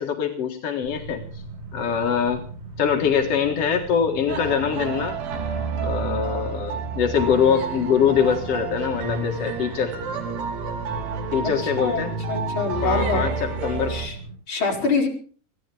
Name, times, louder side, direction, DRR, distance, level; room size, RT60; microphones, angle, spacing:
voice 1, 0.0-1.4 1.7-2.4 2.8-5.2 5.8-9.9 11.3-12.1 12.8-14.0, left 7 dB, 55° left, 3 dB, 1.8 m, -23 dB
sound 1, 0.8-14.3, right 3 dB, 35° right, 8.0 m, -39 dB
sound 2, 4.3-14.1, right 5 dB, 70° right, 4.6 m, -30 dB
voice 2, 11.8-13.3 13.9-14.2 14.5-15.1, left 4 dB, 30° left, 0 dB, 5.0 m, -25 dB
23.0 x 16.5 x 3.5 m, 0.41 s
omnidirectional pair, 5.0 m